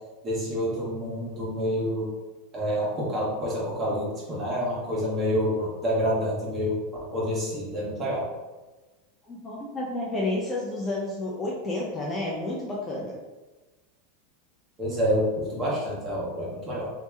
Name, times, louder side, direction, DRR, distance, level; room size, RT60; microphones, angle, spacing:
voice 1, 0.2-2.1 2.5-6.8 7.1-8.2 14.8-16.9, equal, 25° right, -5 dB, 1.3 m, -28 dB
voice 2, 9.3-13.2, left 2 dB, 20° left, -3 dB, 0.6 m, -30 dB
2.9 x 2.8 x 3.5 m, 1.2 s
supercardioid pair, 145°, 0 cm